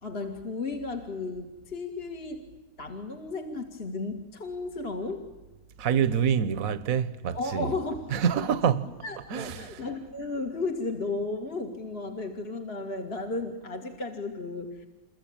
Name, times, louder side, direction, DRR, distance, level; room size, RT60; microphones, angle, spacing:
voice 1, 0.0-2.5 2.8-5.3 7.3-8.5 8.8-14.9, left 3 dB, 35° left, 2.3 m, -34 dB
voice 2, 5.8-7.7 8.1-8.9 9.3-9.6, right 8 dB, 60° right, 1.4 m, -26 dB
28.0 x 23.0 x 8.9 m
omnidirectional pair, 1.8 m